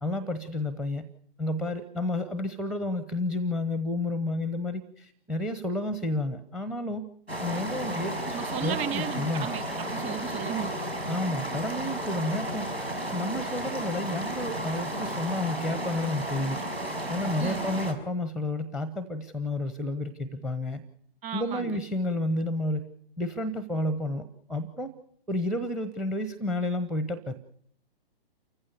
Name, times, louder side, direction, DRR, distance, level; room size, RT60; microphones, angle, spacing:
voice 1, 0.0-1.0 1.4-7.0 7.4-9.5 11.1-12.7 13.1-16.6 17.1-20.8 21.3-22.8 23.2-24.9 25.3-27.4, left 1 dB, ahead, 14 dB, 0.8 m, -31 dB
sound 1, 7.3-17.9, right 1 dB, 90° right, 5.8 m, -33 dB
voice 2, 8.3-10.8 17.4-17.7 21.2-21.8, right 9 dB, 20° right, 9 dB, 1.9 m, -34 dB
28.5 x 15.5 x 6.9 m, 0.66 s
figure-of-eight pair, 120°, 30 cm